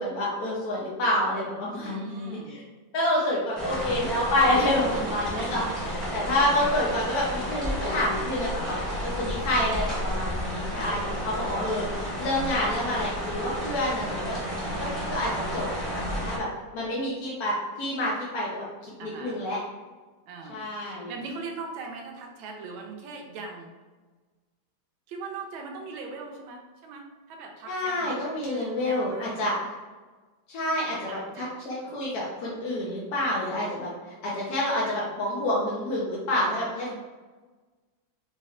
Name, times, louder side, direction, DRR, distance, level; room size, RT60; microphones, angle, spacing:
voice 1, 0.0-2.6 2.9-14.4 14.8-15.7 15.9-16.5 16.7-19.6 20.5-21.1 27.7-29.5 30.5-31.1 31.4-36.9, left 1 dB, 65° left, -5 dB, 1.0 m, -28 dB
voice 2, 1.8-2.6 4.4-5.7 8.6-9.0 10.8-11.3 13.1-13.3 14.1-15.0 15.3-15.6 19.0-19.4 20.3-20.6 21.1-23.7 25.1-29.4 30.8-31.9 34.7-35.1 36.8-37.0, right 4 dB, 85° right, 2 dB, 1.4 m, -41 dB
sound 1, 3.6-16.4, equal, ahead, 1.0 m, -32 dB
4.0 x 3.2 x 2.4 m, 1.3 s
omnidirectional pair, 2.2 m